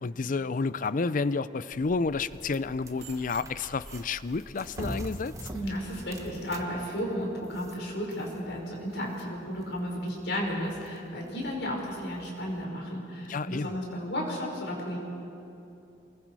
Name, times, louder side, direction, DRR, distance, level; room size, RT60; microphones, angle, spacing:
voice 1, 0.0-5.3 13.3-13.8, left 4 dB, 50° left, 16 dB, 0.5 m, -30 dB
sound 1, 1.7-12.7, right 1 dB, 20° right, 1.2 m, -45 dB
sound 2, 1.7-6.0, right 2 dB, 75° right, 2.2 m, -50 dB
voice 2, 5.5-15.0, equal, 80° left, -2 dB, 5.4 m, -33 dB
28.0 x 21.5 x 4.7 m, 2.8 s
head